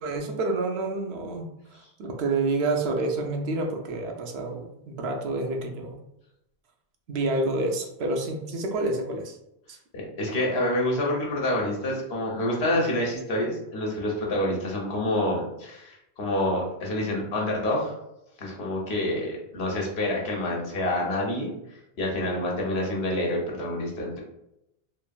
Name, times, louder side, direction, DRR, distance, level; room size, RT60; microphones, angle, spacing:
voice 1, 0.0-6.0 7.1-9.4 9.7-9.8, right 2 dB, 75° right, 2 dB, 0.8 m, -28 dB
voice 2, 9.9-17.9 18.4-24.2, left 1 dB, 75° left, -2 dB, 1.0 m, -27 dB
3.0 x 2.5 x 2.2 m, 0.84 s
omnidirectional pair, 1.1 m